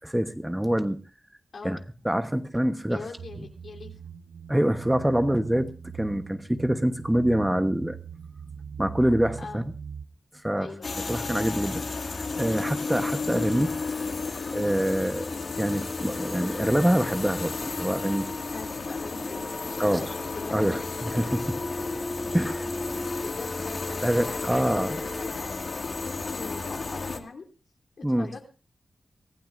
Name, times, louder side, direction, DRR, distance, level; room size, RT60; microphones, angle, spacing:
voice 1, 0.0-1.0 1.6-1.8 2.0-3.0 4.5-5.7 6.0-8.0 8.8-9.7 10.4-10.7 11.1-13.8 14.5-15.3 15.6-18.3 19.8-20.1 20.5-21.6 22.3-22.6 24.0-25.0 28.0-28.3, right 1 dB, 5° right, 8 dB, 1.1 m, -25 dB
voice 2, 1.5-2.1 2.9-3.9 9.4-9.6 10.6-10.9 18.5-20.8 22.4-25.4 26.0-27.4 28.0-28.5, left 4 dB, 70° left, 2 dB, 3.4 m, -42 dB
sound 1, 3.2-10.1, right 7 dB, 75° right, 0.7 m, -41 dB
sound 2, 10.8-27.2, left 4 dB, 55° left, 2.1 m, -33 dB
sound 3, 12.1-25.3, left 1 dB, 20° left, 1.3 m, -40 dB
24.0 x 15.5 x 2.6 m, 0.34 s
wide cardioid pair, 110°, 0 cm